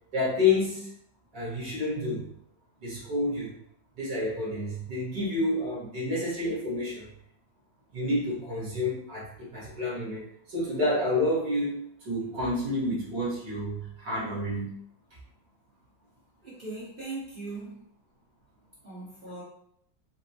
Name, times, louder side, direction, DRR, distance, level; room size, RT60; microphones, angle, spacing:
voice 1, 0.1-0.9 1.3-2.3 2.8-3.5 4.0-7.1 7.9-14.7, left 2 dB, 70° right, -8 dB, 2.0 m, -29 dB
voice 2, 16.4-17.8 18.8-19.4, right 3 dB, 35° right, -9 dB, 0.9 m, -39 dB
5.1 x 2.0 x 2.8 m, 0.70 s
omnidirectional pair, 2.0 m